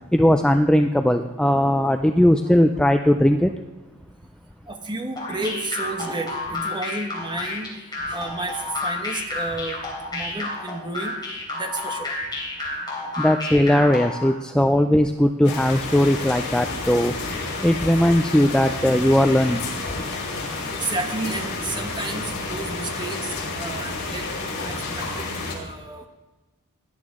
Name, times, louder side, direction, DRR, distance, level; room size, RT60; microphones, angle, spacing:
voice 1, 0.1-3.5 13.2-17.1 17.6-19.6, left 1 dB, 5° left, 6 dB, 0.3 m, -18 dB
voice 2, 4.7-7.7 8.1-9.8 10.1-11.2 11.5-12.1 20.7-26.1, right 2 dB, 20° right, 5 dB, 1.2 m, -32 dB
sound 1, 5.2-14.3, left 2 dB, 20° left, 3.5 m, -30 dB
sound 2, 15.4-25.5, left 3 dB, 50° left, 4.1 m, -30 dB
17.0 x 11.0 x 3.7 m, 1.2 s
head